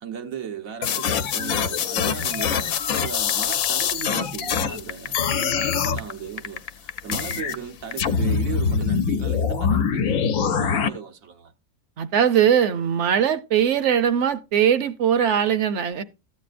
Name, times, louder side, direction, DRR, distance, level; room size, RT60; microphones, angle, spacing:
voice 1, 0.0-11.5, right 7 dB, 85° right, 1.5 m, -36 dB
sound 1, 0.8-4.8 5.1-6.0 7.1-7.5 8.0-10.9, left 7 dB, 90° left, 1.1 m, -24 dB
sound 2, 2.2-7.9, left 7 dB, 55° left, 0.4 m, -36 dB
voice 2, 12.0-16.0, right 8 dB, 65° right, 1.0 m, -20 dB
13.5 x 8.5 x 2.5 m
omnidirectional pair, 1.4 m